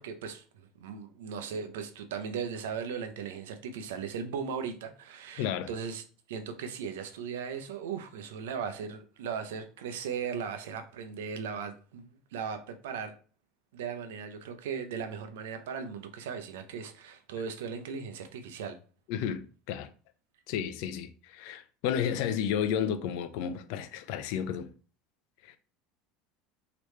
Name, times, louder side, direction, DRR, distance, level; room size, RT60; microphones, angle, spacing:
voice 1, 0.0-13.1 13.7-18.8, right 6 dB, 85° right, 0.6 m, -38 dB
voice 2, 5.4-5.7 19.1-19.9 20.5-24.7 25.5-25.6, left 8 dB, 70° left, 0.5 m, -32 dB
3.1 x 3.0 x 3.2 m
hypercardioid pair, 90°, 0 cm